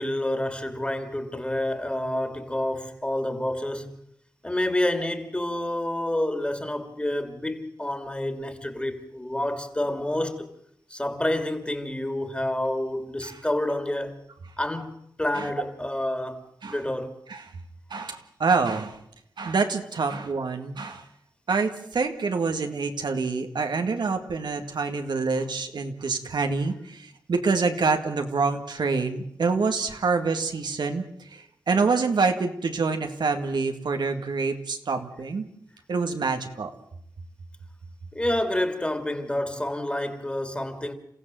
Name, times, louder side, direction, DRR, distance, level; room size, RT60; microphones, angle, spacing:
voice 1, 0.0-4.0 4.4-10.5 10.9-14.2 14.6-17.2 38.1-40.9, left 1 dB, 15° left, 2.6 m, -28 dB
voice 2, 17.9-19.0 19.4-21.1 21.5-35.5 35.9-36.7, right 4 dB, 85° right, 2.0 m, -26 dB
28.5 x 15.5 x 7.7 m
wide cardioid pair, 75°, 7 cm